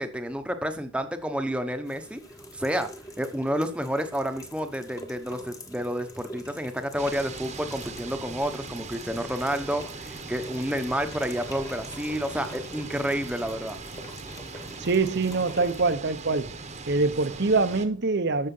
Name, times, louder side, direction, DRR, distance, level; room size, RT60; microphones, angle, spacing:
voice 1, 0.0-2.2 2.5-2.9 3.2-13.8, equal, 5° right, 1.1 m, -30 dB
sound 1, 1.8-15.9, left 1 dB, 15° left, 1.3 m, -45 dB
sound 2, 7.0-17.9, right 4 dB, 35° right, 1.2 m, -40 dB
voice 2, 14.8-16.6 16.9-18.5, right 3 dB, 55° right, 0.9 m, -24 dB
13.0 x 6.6 x 5.5 m
head